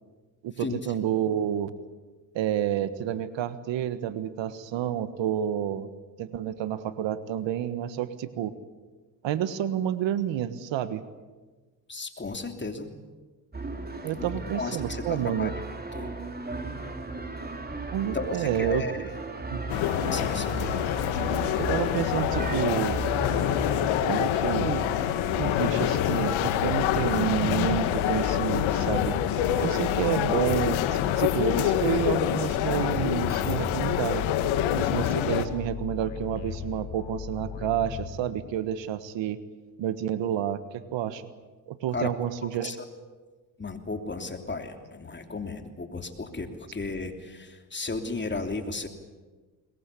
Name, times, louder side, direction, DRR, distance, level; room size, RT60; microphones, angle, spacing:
voice 1, 0.4-1.7 2.3-5.9 6.2-8.5 9.2-11.0 14.0-15.5 17.9-19.1 19.5-19.6 21.6-23.0 24.1-24.8 25.4-29.2 29.6-34.2 34.7-39.4 39.8-41.2 41.7-42.7, right 10 dB, 70° right, 13 dB, 1.5 m, -29 dB
voice 2, 11.9-12.9 14.2-15.5 15.9-16.2 18.1-19.0 20.1-20.8 41.9-42.1 42.6-42.9 43.6-48.9, left 3 dB, 25° left, 6 dB, 3.2 m, -34 dB
sound 1, 13.5-29.9, right 3 dB, 20° right, 3.4 m, -37 dB
sound 2, 19.7-35.5, left 11 dB, 80° left, 1.7 m, -26 dB
sound 3, 26.4-38.7, left 7 dB, 65° left, 3.7 m, -38 dB
22.0 x 21.0 x 8.5 m, 1.3 s
supercardioid pair, 80°, 46 cm